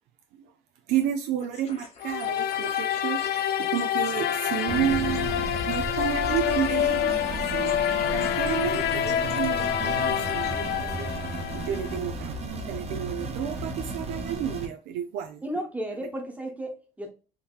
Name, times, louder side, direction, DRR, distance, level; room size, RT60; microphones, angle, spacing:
voice 1, 0.9-15.4, right 10 dB, 85° right, 0.4 m, -31 dB
sound 1, 1.4-10.5, left 4 dB, 40° left, 0.9 m, -47 dB
sound 2, 2.0-12.0, left 10 dB, 70° left, 0.4 m, -27 dB
sound 3, 4.7-14.7, right 3 dB, 40° right, 0.8 m, -34 dB
voice 2, 15.4-17.1, right 1 dB, 10° right, 0.9 m, -34 dB
3.6 x 2.8 x 2.3 m
cardioid pair, 110°, 17 cm